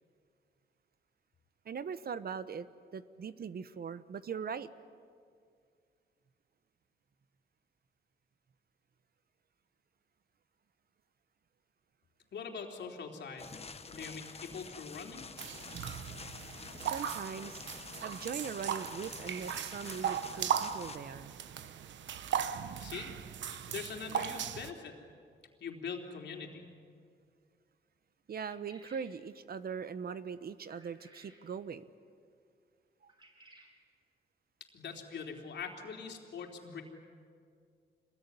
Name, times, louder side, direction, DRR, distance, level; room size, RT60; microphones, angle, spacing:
voice 1, 1.7-2.7 2.9-4.7 16.8-17.6 18.0-21.3 28.3-31.8, right 6 dB, 55° right, 14 dB, 1.0 m, -40 dB
voice 2, 12.3-13.4 13.9-15.3 22.8-23.1 23.7-25.0 25.6-26.6 34.7-36.8, left 5 dB, 70° left, 2 dB, 3.7 m, -43 dB
sound 1, 13.4-21.0, left 4 dB, 35° left, 1.2 m, -48 dB
sound 2, 15.4-24.7, right 9 dB, 85° right, 1.1 m, -38 dB
sound 3, 28.4-29.1 30.7-31.4 33.1-33.7, right 2 dB, 25° right, 5.7 m, -59 dB
26.0 x 21.0 x 9.9 m, 2.2 s
cardioid pair, 95°, 19 cm